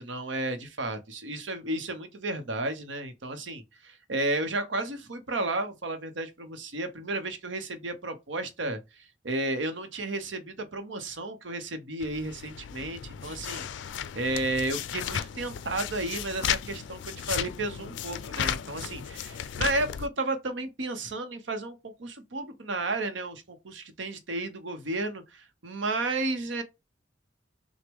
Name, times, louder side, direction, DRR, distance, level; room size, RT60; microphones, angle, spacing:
voice 1, 0.0-26.6, right 2 dB, 90° right, 0.8 m, -33 dB
sound 1, 12.0-20.1, left 9 dB, 75° left, 0.3 m, -34 dB
6.0 x 2.1 x 3.4 m
head